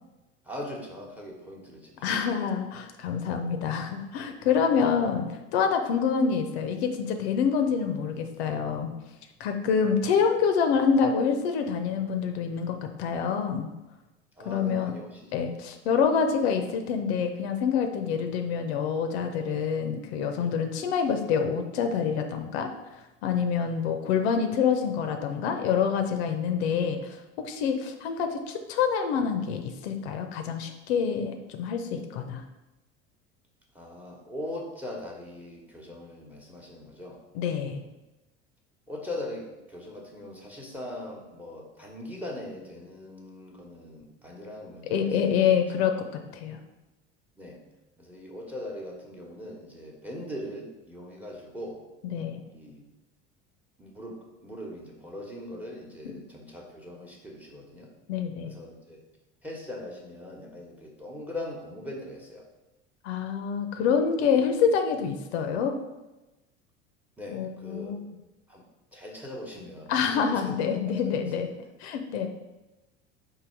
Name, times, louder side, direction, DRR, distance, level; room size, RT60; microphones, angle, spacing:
voice 1, 0.4-2.3 14.4-15.3 33.7-37.2 38.9-45.4 47.4-47.6 48.0-51.8 52.5-52.8 53.8-57.9 58.4-59.0 59.4-62.5 64.3-64.4 67.2-67.9 68.5-68.6 68.9-71.4, left 1 dB, 5° right, 0 dB, 1.0 m, -40 dB
voice 2, 2.0-8.9 9.4-13.7 14.5-14.9 15.3-22.7 23.2-32.4 37.3-37.8 44.9-46.0 46.3-46.6 52.1-52.4 58.1-58.5 63.0-65.8 67.3-68.0 69.9-71.5 71.8-72.3, left 6 dB, 70° left, 6 dB, 0.6 m, -26 dB
3.9 x 2.8 x 4.5 m, 1.0 s
hypercardioid pair, 75°, 33 cm